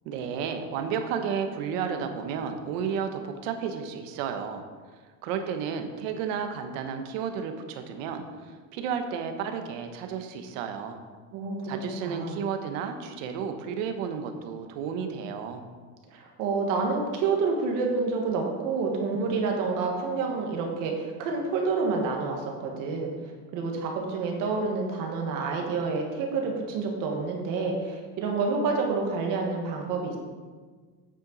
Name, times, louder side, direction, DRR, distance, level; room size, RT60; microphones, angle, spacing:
voice 1, 0.0-4.6 5.2-11.0 11.6-15.6, right 7 dB, 65° right, 6 dB, 1.2 m, -32 dB
voice 2, 11.3-12.4 16.1-23.1 23.5-30.2, right 4 dB, 50° right, 1 dB, 1.6 m, -28 dB
8.9 x 7.8 x 4.0 m, 1.5 s
cardioid pair, 170°, 42 cm